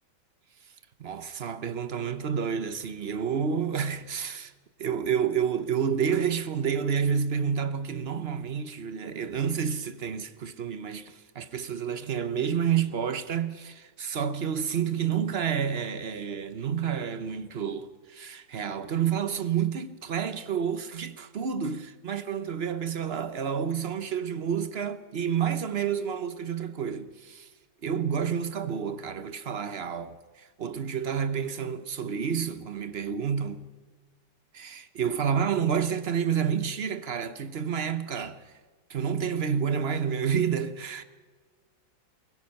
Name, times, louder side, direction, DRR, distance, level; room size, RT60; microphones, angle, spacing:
voice 1, 1.0-4.5 4.8-27.5 27.8-33.7 34.5-38.5 38.9-41.0, right 7 dB, 55° right, 0.7 m, -29 dB
24.0 x 21.5 x 5.8 m
omnidirectional pair, 2.1 m